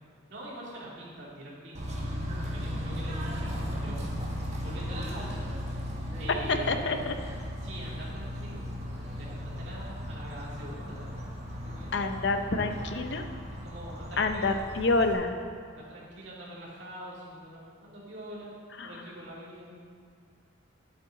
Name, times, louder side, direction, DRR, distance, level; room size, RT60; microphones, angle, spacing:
voice 1, 0.3-2.0 2.4-4.1 4.6-5.5 5.8-5.9 6.2-6.9 7.6-11.3 11.6-11.9 13.6-14.7 15.7-19.8, right 1 dB, 65° right, -6 dB, 2.6 m, -44 dB
Bird / Train, 1.7-15.1, equal, 35° right, 1.4 m, -36 dB
sound 1, 3.9-13.2, equal, 10° left, 1.9 m, -50 dB
voice 2, 6.5-7.1 11.9-13.2 14.2-15.4 18.8-18.9, left 3 dB, 60° left, 6 dB, 0.7 m, -27 dB
11.5 x 7.9 x 3.9 m, 2.1 s
head